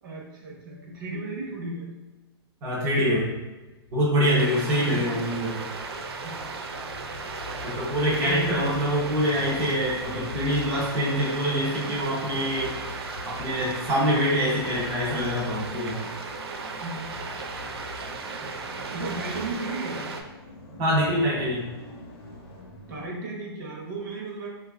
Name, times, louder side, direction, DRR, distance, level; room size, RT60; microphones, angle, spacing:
voice 1, 0.0-1.9 4.7-5.1 6.2-6.6 8.2-9.4 16.8-17.2 18.4-20.1 20.7-20.8 22.9-24.5, right 2 dB, 50° right, -3 dB, 0.8 m, -35 dB
voice 2, 2.6-3.3 3.9-5.6 7.6-12.7 13.2-16.0 20.8-21.7, equal, 20° right, -9 dB, 0.6 m, -25 dB
sound 1, 3.6-23.1, left 3 dB, 60° left, 0.7 m, -44 dB
sound 2, 4.4-20.2, right 4 dB, 70° right, 0.4 m, -36 dB
2.7 x 2.4 x 3.3 m, 1.2 s
hypercardioid pair, 170°, 14 cm